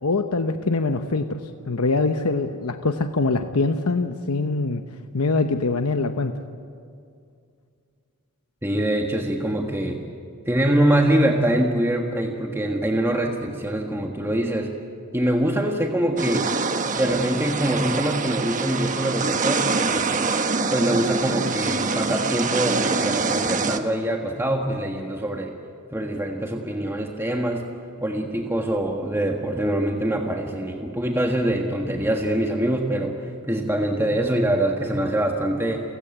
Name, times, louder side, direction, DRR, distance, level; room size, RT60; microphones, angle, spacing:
voice 1, 0.0-1.4 1.7-4.8 5.1-6.3, left 3 dB, 90° left, 7 dB, 1.0 m, -23 dB
voice 2, 8.6-10.0 10.5-14.7 15.1-16.5 16.9-20.3 20.7-25.5 25.9-27.6 28.0-35.8, right 1 dB, 10° right, 1 dB, 1.5 m, -24 dB
sound 1, 16.2-23.8, right 4 dB, 35° right, 1.2 m, -25 dB
29.0 x 17.0 x 8.9 m, 2.3 s
head